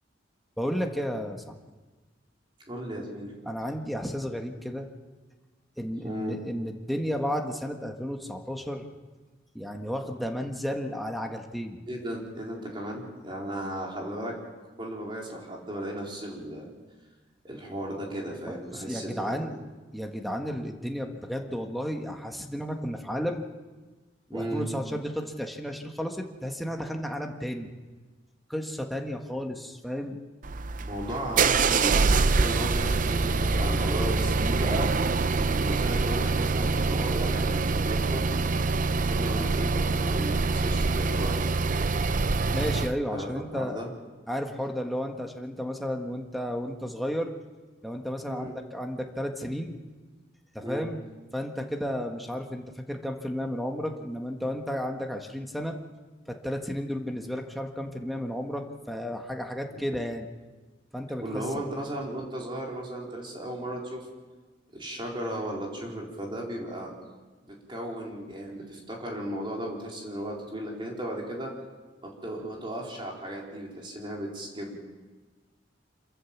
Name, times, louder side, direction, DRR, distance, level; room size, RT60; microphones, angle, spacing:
voice 1, 0.6-1.4 3.4-4.9 5.8-8.8 9.5-11.8 18.5-19.5 19.9-23.4 24.3-27.7 28.5-30.2 42.5-43.8 44.3-47.3 47.8-49.8 50.5-51.0 51.3-55.7 56.3-60.3 60.9-61.6, equal, ahead, 2 dB, 1.6 m, -33 dB
voice 2, 2.7-3.3 6.0-6.4 11.9-14.4 14.8-16.7 17.4-19.6 24.3-24.7 30.8-34.9 35.6-38.3 39.1-41.4 43.1-43.9 48.3-48.5 50.6-50.9 59.7-59.8 61.2-64.1 64.7-66.9 67.5-71.5 72.0-74.8, right 1 dB, 25° right, -2 dB, 4.3 m, -35 dB
sound 1, 30.4-43.0, right 4 dB, 45° right, 0.6 m, -25 dB
27.0 x 14.5 x 7.3 m, 1.3 s
head